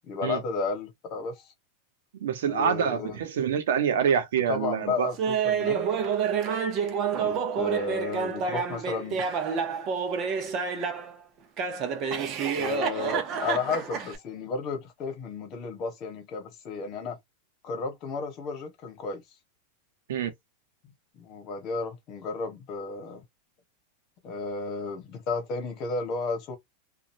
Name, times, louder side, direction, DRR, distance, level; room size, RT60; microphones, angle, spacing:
voice 1, 0.0-1.5 2.5-3.2 4.5-5.8 7.1-9.3 12.5-17.2 17.6-19.2 21.1-23.2 24.2-26.6, left 4 dB, 35° left, 1.2 m, -33 dB
voice 2, 2.2-5.1 20.1-20.3, right 7 dB, 85° right, 0.9 m, -26 dB
Laughter, 5.2-11.1 11.6-14.2, right 6 dB, 35° right, 0.8 m, -28 dB
3.0 x 2.4 x 2.6 m
supercardioid pair, 155°, 0 cm